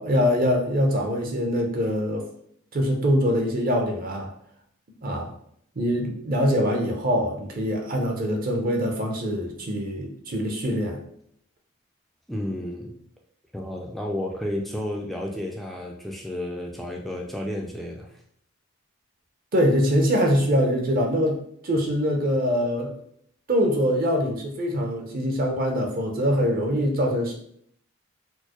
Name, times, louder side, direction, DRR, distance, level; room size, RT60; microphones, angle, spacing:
voice 1, 0.0-2.2 2.7-4.3 5.0-5.3 5.8-11.0 19.5-23.0 23.5-27.4, equal, 40° right, 1 dB, 0.6 m, -23 dB
voice 2, 12.3-12.9 13.5-18.1, left 1 dB, ahead, 0 dB, 0.3 m, -31 dB
4.4 x 2.1 x 2.9 m, 0.67 s
head